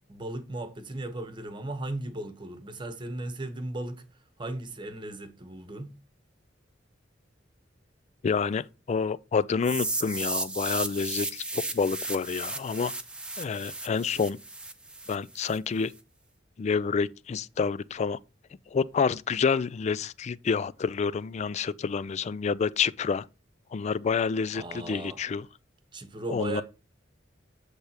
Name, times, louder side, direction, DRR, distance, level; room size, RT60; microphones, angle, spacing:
voice 1, 0.1-4.0 4.4-5.9 24.5-25.2 25.9-26.6, right 2 dB, 25° right, 1.0 m, -36 dB
voice 2, 8.2-12.9 13.4-14.4 15.1-15.9 16.6-18.2 18.7-23.3 23.7-25.5 26.3-26.6, left 5 dB, 35° left, 0.3 m, -28 dB
sound 1, 9.6-15.6, right 2 dB, 5° right, 0.8 m, -34 dB
8.0 x 3.4 x 5.7 m
head